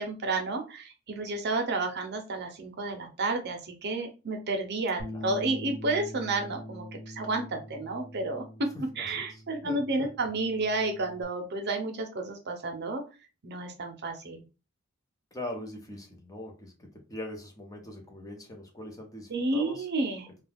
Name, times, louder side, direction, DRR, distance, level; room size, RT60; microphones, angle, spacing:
voice 1, 0.0-13.0 13.4-14.4 19.3-20.3, right 2 dB, 50° right, 0.7 m, -31 dB
Bass guitar, 5.0-11.2, left 1 dB, 15° right, 0.8 m, -44 dB
voice 2, 8.9-10.1 15.3-19.9, left 1 dB, 15° left, 0.7 m, -42 dB
2.3 x 2.3 x 3.3 m
head